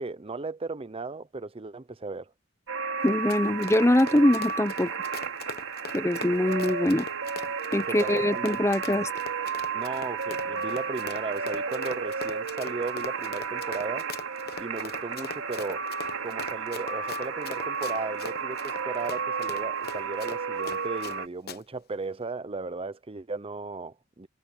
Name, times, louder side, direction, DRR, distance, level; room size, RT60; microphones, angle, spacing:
voice 1, 0.0-2.3 7.8-8.4 9.7-14.1 14.6-15.9 16.2-24.3, right 3 dB, 30° right, 0.6 m, -36 dB
sound 1, 2.7-21.3, right 5 dB, 90° right, 2.6 m, -33 dB
Run, 3.0-21.2 21.5-21.6, left 5 dB, 50° left, 1.0 m, -41 dB
voice 2, 3.0-4.9 5.9-7.1 7.7-9.1, left 1 dB, 15° left, 0.8 m, -23 dB
head